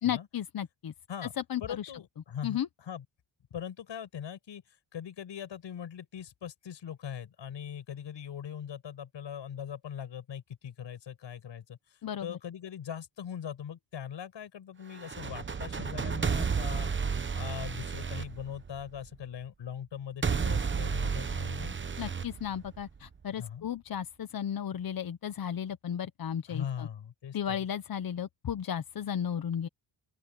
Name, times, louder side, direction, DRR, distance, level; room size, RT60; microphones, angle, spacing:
voice 1, 0.0-0.9 1.5-1.9 2.4-2.7 12.0-12.4 22.0-26.9 27.3-29.7, left 9 dB, 50° left, 1.0 m, -34 dB
voice 2, 1.6-3.0 3.5-4.6 4.9-11.8 12.2-16.9 17.3-21.8 23.4-23.7 26.5-27.6, left 8 dB, 65° left, 6.1 m, -41 dB
sound 1, 14.9-19.1 20.2-23.1, right 6 dB, 25° right, 0.9 m, -32 dB
open air
wide cardioid pair, 140°, 47 cm